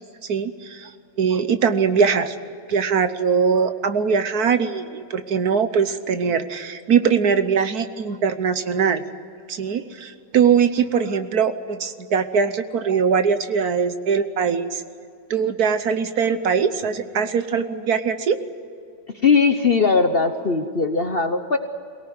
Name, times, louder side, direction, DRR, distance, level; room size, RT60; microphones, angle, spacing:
voice 1, 0.3-0.9 1.2-2.4 2.7-9.0 9.5-14.8 15.3-18.4, right 6 dB, 60° right, 11 dB, 1.4 m, -21 dB
voice 2, 19.2-21.6, left 4 dB, 40° left, 7 dB, 0.9 m, -19 dB
23.5 x 18.0 x 9.5 m, 2.5 s
omnidirectional pair, 2.0 m